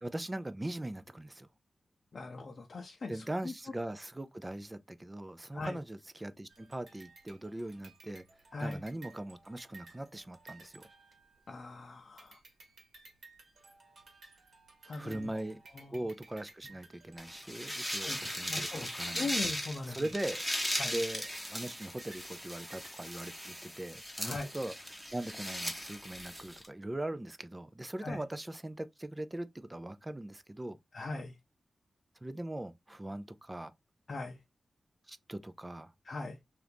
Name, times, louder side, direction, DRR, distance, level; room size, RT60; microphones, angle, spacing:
voice 1, 0.0-1.5 3.1-8.2 8.6-10.8 15.0-15.6 15.9-19.4 19.8-20.4 20.9-30.8 32.2-33.7 35.1-35.9, right 1 dB, 20° right, 0.4 m, -40 dB
voice 2, 2.1-3.5 5.5-5.8 8.5-8.8 11.5-12.4 14.9-15.3 15.7-16.0 16.6-16.7 17.9-20.0 20.8-20.9 24.2-24.5 28.0-28.2 30.9-31.3 34.1-34.4 36.0-36.4, left 3 dB, 55° left, 0.5 m, -40 dB
sound 1, 6.5-11.8 12.2-23.7, right 3 dB, 70° right, 1.2 m, -58 dB
sound 2, 17.2-26.7, equal, 5° left, 1.1 m, -38 dB
2.8 x 2.5 x 3.4 m
wide cardioid pair, 80°, 0 cm